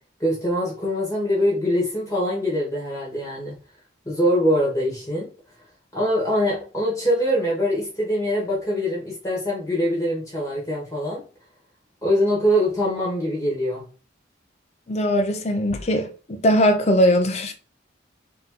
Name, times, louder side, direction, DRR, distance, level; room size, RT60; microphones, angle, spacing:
voice 1, 0.2-3.5 4.0-5.3 5.9-11.2 12.0-13.8, equal, 15° left, 1.4 m, -23 dB
voice 2, 14.9-17.5, equal, 35° left, 0.6 m, -20 dB
3.9 x 2.9 x 3.7 m
head